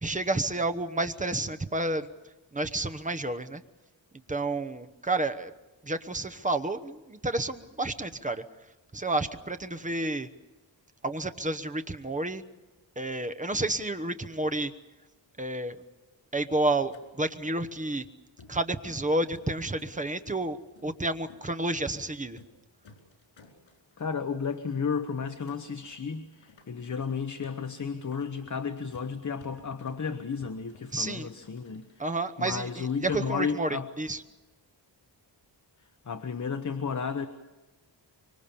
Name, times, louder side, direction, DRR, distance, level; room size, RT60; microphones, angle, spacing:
voice 1, 0.0-2.1 2.5-3.6 4.3-5.5 5.8-8.4 8.9-10.3 11.0-12.4 13.0-14.7 15.4-15.8 16.3-18.0 18.5-22.4 30.9-31.3 32.0-34.2, right 2 dB, 15° right, 10 dB, 1.0 m, -30 dB
sound 1, 16.9-17.0 17.4-18.0 18.4-19.1 19.3-20.4 20.7-20.9 21.3-21.5 21.8-22.0 22.3-22.6 22.8-24.1 24.5-24.6 24.8-25.1 25.5-26.1 26.3-32.0, left 4 dB, 85° left, 4.8 m, -56 dB
voice 2, 24.0-33.9 35.8-37.3, left 6 dB, 40° left, 8 dB, 1.1 m, -33 dB
25.0 x 24.0 x 7.0 m, 1.1 s
wide cardioid pair, 170°, 44 cm